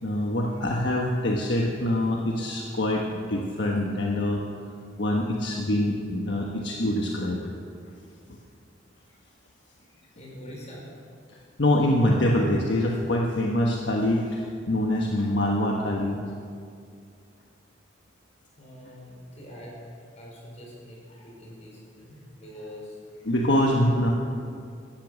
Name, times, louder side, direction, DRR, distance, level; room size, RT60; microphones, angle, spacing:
voice 1, 0.0-4.4 5.0-7.4 11.6-16.2 23.2-24.1, left 1 dB, 65° left, -1 dB, 1.3 m, -24 dB
voice 2, 10.2-10.8 18.6-19.8 20.2-23.0, equal, 35° left, -3 dB, 5.3 m, -44 dB
16.5 x 13.0 x 6.4 m, 2.3 s
head